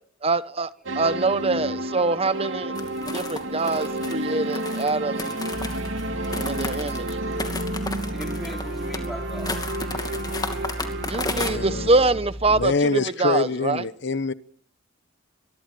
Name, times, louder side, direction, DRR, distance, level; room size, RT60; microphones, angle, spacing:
voice 1, 0.2-0.7 0.9-2.7 3.1-5.4 6.4-7.1 11.0-13.8, right 3 dB, 30° right, 1.1 m, -24 dB
sound 1, 0.9-11.9, right 1 dB, 70° right, 2.8 m, -31 dB
sound 2, 2.8-11.5, left 3 dB, 20° left, 2.6 m, -33 dB
sound 3, 5.5-12.7, equal, 50° right, 6.4 m, -36 dB
voice 2, 6.4-7.0 7.8-9.9 10.3-10.5 10.8-11.0, equal, ahead, 4.4 m, -41 dB
voice 3, 11.3-12.1 12.5-14.3, left 4 dB, 60° left, 1.0 m, -25 dB
23.5 x 22.5 x 9.3 m
head